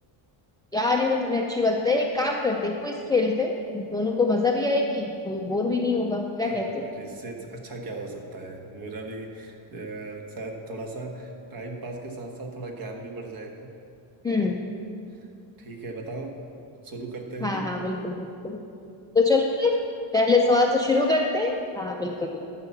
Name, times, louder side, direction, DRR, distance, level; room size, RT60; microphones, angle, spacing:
voice 1, 0.7-6.9 14.2-14.6 17.4-18.6 19.1-19.8 20.1-22.4, left 3 dB, 10° left, 1 dB, 0.4 m, -24 dB
voice 2, 6.4-13.7 15.1-15.2 15.6-16.3 16.8-17.7, right 2 dB, 45° right, 3 dB, 1.5 m, -37 dB
11.5 x 5.8 x 7.1 m, 2.6 s
cardioid pair, 140°, 49 cm